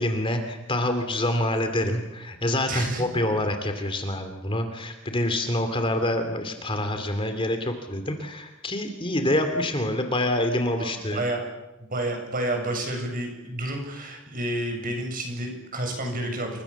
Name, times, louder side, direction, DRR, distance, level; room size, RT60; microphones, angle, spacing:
voice 1, 0.0-11.2, left 1 dB, 25° left, 7 dB, 2.9 m, -26 dB
voice 2, 2.7-3.2 10.7-11.4 11.8-16.6, right 1 dB, 40° right, 3 dB, 7.8 m, -30 dB
29.0 x 25.5 x 7.3 m, 0.99 s
head